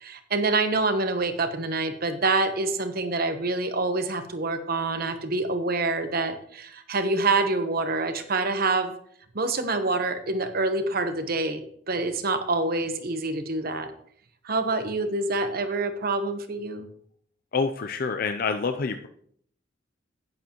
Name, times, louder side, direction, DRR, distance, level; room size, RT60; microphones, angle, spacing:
voice 1, 0.0-8.9 9.3-13.9 14.4-16.9, right 3 dB, 55° right, 8 dB, 1.0 m, -26 dB
voice 2, 17.5-19.1, left 5 dB, 50° left, 7 dB, 0.5 m, -27 dB
10.5 x 9.3 x 3.0 m, 0.64 s
head